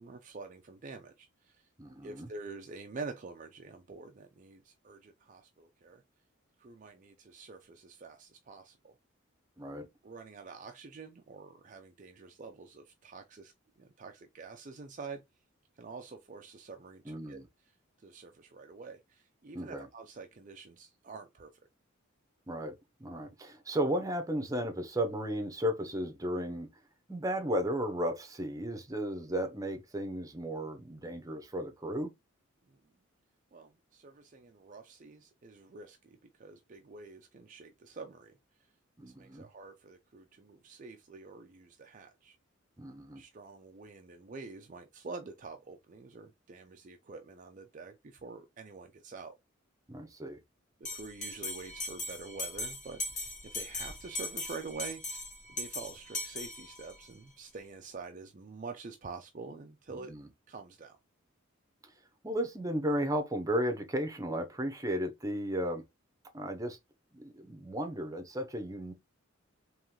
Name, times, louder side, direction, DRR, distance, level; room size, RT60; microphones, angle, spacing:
voice 1, 0.0-1.7 2.0-6.0 6.6-9.0 10.0-13.5 13.8-15.2 15.8-17.4 18.0-21.6 32.7-32.8 33.5-38.4 39.0-42.4 43.2-49.4 50.8-60.1 60.5-61.0, right 4 dB, 40° right, 0.5 m, -47 dB
voice 2, 1.8-2.3 9.6-9.9 17.0-17.5 19.5-19.9 22.5-26.7 27.1-32.1 39.0-39.5 42.8-43.2 49.9-50.4 59.9-60.3 62.2-65.8 66.3-66.8 67.1-68.9, equal, 15° right, 0.8 m, -34 dB
Bell, 50.8-57.1, left 2 dB, 35° left, 1.3 m, -39 dB
3.7 x 3.1 x 3.0 m
head